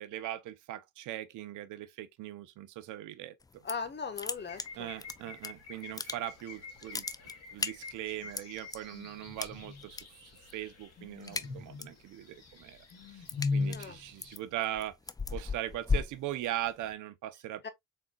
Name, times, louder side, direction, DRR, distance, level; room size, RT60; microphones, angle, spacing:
voice 1, 0.0-3.6 4.8-7.1 7.5-13.2 13.5-15.0 15.3-17.7, right 13 dB, 85° right, 0.6 m, -40 dB
sound 1, 3.4-5.5 5.8-6.5 6.8-8.8 9.4-10.0 10.3-10.7 11.0-12.0 12.4-16.9, left 4 dB, 15° left, 0.3 m, -36 dB
voice 2, 3.6-4.9 13.7-14.0 17.6-17.7, left 5 dB, 35° left, 1.0 m, -38 dB
sound 2, 4.4-14.4, left 4 dB, 55° left, 2.1 m, -41 dB
4.1 x 3.9 x 2.2 m
cardioid pair, 90°, 30 cm